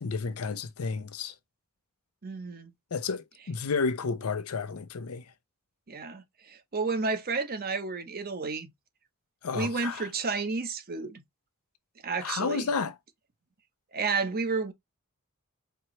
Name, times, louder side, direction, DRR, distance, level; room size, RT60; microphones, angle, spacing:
voice 1, 0.0-1.3 2.9-5.2 9.4-10.0 12.2-12.9, left 4 dB, 90° left, 0.6 m, -31 dB
voice 2, 2.2-2.7 5.9-8.7 9.5-11.2 12.0-12.7 13.9-14.7, right 4 dB, 45° right, 0.8 m, -31 dB
4.4 x 2.9 x 3.1 m
head